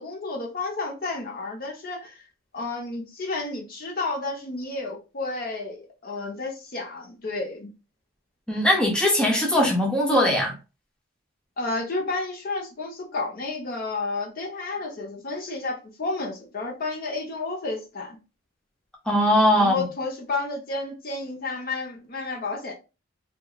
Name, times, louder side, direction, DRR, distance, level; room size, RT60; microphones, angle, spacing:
voice 1, 0.0-2.2 2.5-7.7 11.6-18.2 19.6-22.7, left 3 dB, 50° left, 0.7 m, -31 dB
voice 2, 8.5-10.5 19.1-19.8, equal, 5° left, 0.5 m, -20 dB
2.9 x 2.3 x 2.3 m
head